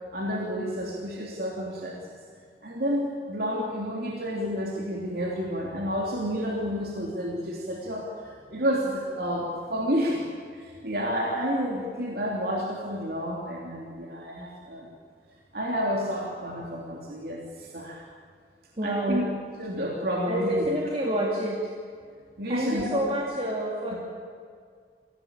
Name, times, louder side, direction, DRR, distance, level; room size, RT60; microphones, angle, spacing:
voice 1, 0.1-2.2 2.6-10.2 10.5-14.9 15.5-18.0 18.8-19.3 19.6-20.7 22.4-23.2, equal, 60° right, -2 dB, 3.2 m, -30 dB
voice 2, 18.8-19.3 20.3-21.7 22.4-24.0, right 1 dB, 35° right, -3 dB, 2.7 m, -28 dB
26.0 x 17.0 x 8.8 m, 2.1 s
head